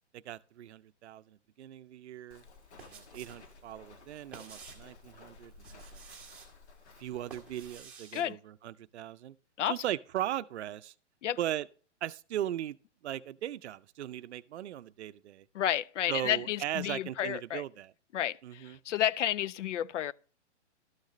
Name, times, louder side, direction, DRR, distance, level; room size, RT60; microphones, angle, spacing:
voice 1, 0.1-2.4 2.8-6.0 7.0-9.4 9.7-10.9 11.4-11.7 12.0-12.8 13.0-15.5 16.1-17.9 18.4-18.8, right 12 dB, 65° right, 0.5 m, -38 dB
Walk footsteps, 2.3-7.8, left 4 dB, 65° left, 1.6 m, -55 dB
sound 1, 2.5-3.4 3.7-4.9 5.5-6.5 7.0-8.2, right 5 dB, 5° right, 0.8 m, -51 dB
voice 2, 15.5-17.6 18.1-20.1, left 11 dB, 85° left, 0.5 m, -31 dB
12.5 x 6.5 x 3.1 m
hypercardioid pair, 165°, 36 cm